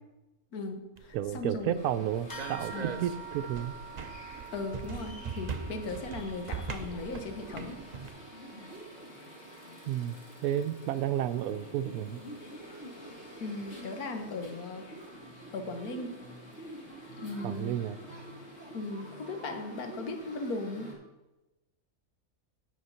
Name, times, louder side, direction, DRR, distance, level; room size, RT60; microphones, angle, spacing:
voice 1, 0.5-1.8 2.7-2.9 4.5-7.8 13.4-14.9 15.5-16.1 17.2-17.8 18.7-20.9, left 2 dB, 85° left, 6 dB, 1.5 m, -37 dB
sound 1, 1.0-8.1, right 5 dB, 50° right, 0.5 m, -41 dB
voice 2, 1.1-3.8 7.3-7.4 9.9-12.2 17.4-18.0, right 11 dB, 90° right, 13 dB, 1.1 m, -32 dB
sound 2, 1.7-20.9, right 1 dB, 50° left, 2.3 m, -48 dB
sound 3, 2.3-12.1, right 4 dB, 25° left, 0.5 m, -49 dB
9.4 x 5.9 x 5.6 m, 1.1 s
omnidirectional pair, 1.5 m